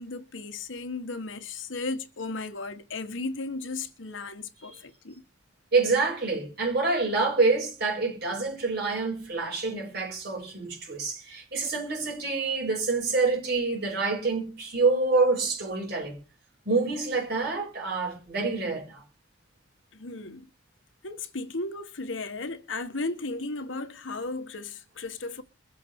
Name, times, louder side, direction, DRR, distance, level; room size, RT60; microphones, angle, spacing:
voice 1, 0.0-5.2 19.9-20.5 21.0-25.4, left 3 dB, 80° left, 1.2 m, -35 dB
voice 2, 5.7-16.2 16.6-19.0, right 3 dB, 55° right, 6.4 m, -27 dB
22.5 x 8.3 x 3.6 m
head